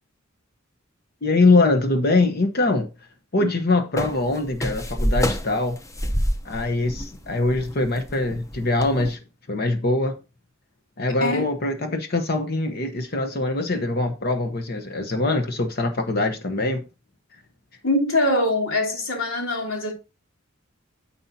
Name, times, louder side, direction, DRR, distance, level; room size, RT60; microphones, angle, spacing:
voice 1, 1.2-2.9 3.3-5.8 6.4-9.2 9.5-10.2 11.0-16.8, left 2 dB, 50° left, 1.0 m, -23 dB
sound 1, 4.0-9.1, equal, 15° left, 0.7 m, -27 dB
voice 2, 17.8-19.9, left 1 dB, 85° left, 3.0 m, -23 dB
9.7 x 7.0 x 2.7 m
head